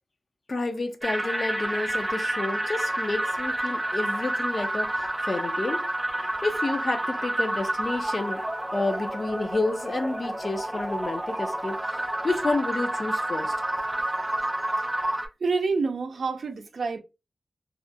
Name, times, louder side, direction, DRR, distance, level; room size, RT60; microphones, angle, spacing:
voice 1, 0.5-5.8 6.4-8.4 8.7-13.5, left 2 dB, 50° left, 0.5 m, -30 dB
sound 1, 1.0-15.3, right 1 dB, 20° right, 0.5 m, -29 dB
voice 2, 15.4-17.0, right 4 dB, 75° right, 0.4 m, -27 dB
2.4 x 2.1 x 2.6 m
cardioid pair, 60°, 0 cm